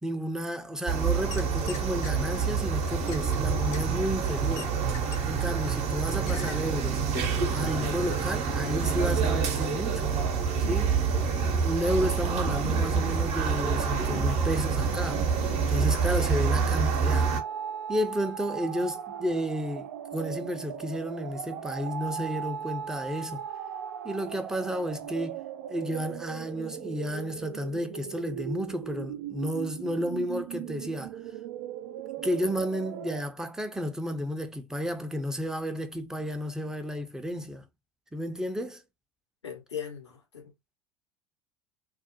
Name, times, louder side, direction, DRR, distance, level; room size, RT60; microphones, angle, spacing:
voice 1, 0.0-4.8 5.2-7.0 7.5-10.1 10.7-11.0 11.6-15.3 15.7-17.4 17.9-23.4 24.0-25.4 25.7-31.2 32.2-37.7 38.1-38.8, equal, 5° right, 0.5 m, -32 dB
sound 1, 0.9-17.4, right 5 dB, 50° right, 0.7 m, -27 dB
sound 2, 1.3-2.1 2.8-5.5 5.8-6.0 6.3-6.6 7.0-7.1, left 6 dB, 55° left, 0.7 m, -43 dB
sound 3, 15.1-33.2, right 9 dB, 75° right, 0.4 m, -38 dB
voice 2, 39.4-40.8, left 8 dB, 90° left, 0.8 m, -39 dB
2.4 x 2.0 x 2.6 m
hypercardioid pair, 75°, 14 cm